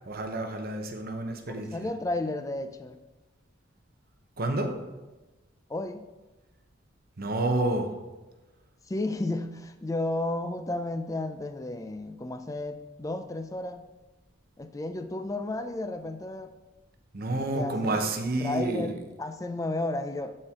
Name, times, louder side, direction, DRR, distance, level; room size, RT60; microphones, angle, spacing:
voice 1, 0.1-1.9 4.4-4.7 7.2-7.9 17.1-19.0, right 2 dB, 50° right, 4 dB, 0.9 m, -29 dB
voice 2, 1.5-3.0 5.7-6.1 8.9-13.8 14.6-16.5 17.4-18.1 18.4-20.3, left 2 dB, 15° left, 9 dB, 0.4 m, -33 dB
11.5 x 4.4 x 3.7 m, 1.1 s
head